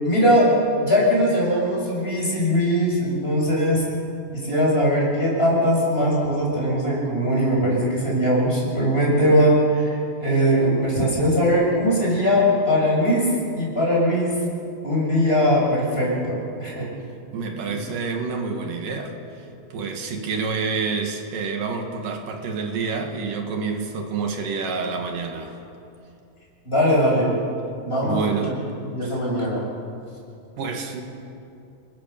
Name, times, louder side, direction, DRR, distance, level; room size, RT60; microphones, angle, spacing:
voice 1, 0.0-3.9 4.3-14.4 14.8-16.9 17.7-17.8 26.7-27.3 27.8-28.5 28.9-29.6, equal, 15° left, -4 dB, 6.9 m, -20 dB
voice 2, 17.3-25.6 28.0-28.6 29.0-29.2 30.6-31.0, right 4 dB, 90° right, 3 dB, 3.7 m, -28 dB
29.0 x 21.0 x 6.8 m, 2.7 s
omnidirectional pair, 3.7 m